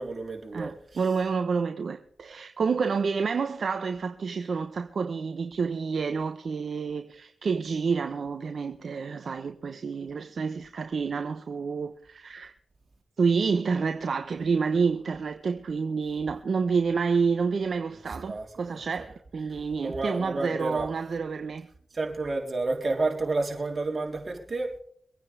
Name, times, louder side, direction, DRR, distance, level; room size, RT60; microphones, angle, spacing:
voice 1, 0.0-0.7 18.2-18.5 18.7-18.8 19.8-20.9 21.9-24.8, right 3 dB, 45° right, 3.6 m, -30 dB
voice 2, 0.5-12.5 13.2-21.7, right 5 dB, 65° right, 1.0 m, -29 dB
24.5 x 9.5 x 3.4 m
cardioid pair, 50°, 0 cm